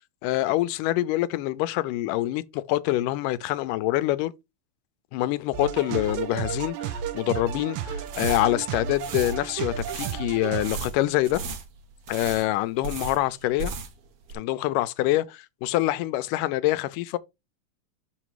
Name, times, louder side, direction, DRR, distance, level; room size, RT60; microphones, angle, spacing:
voice 1, 0.2-4.3 5.1-11.4 12.1-13.7 14.3-17.2, left 16 dB, 90° left, 2.2 m, -25 dB
sound 1, 5.5-10.7, right 8 dB, 75° right, 2.0 m, -32 dB
sound 2, 8.0-14.0 14.3-14.4, right 4 dB, 60° right, 1.8 m, -36 dB
6.2 x 5.8 x 4.7 m
omnidirectional pair, 3.7 m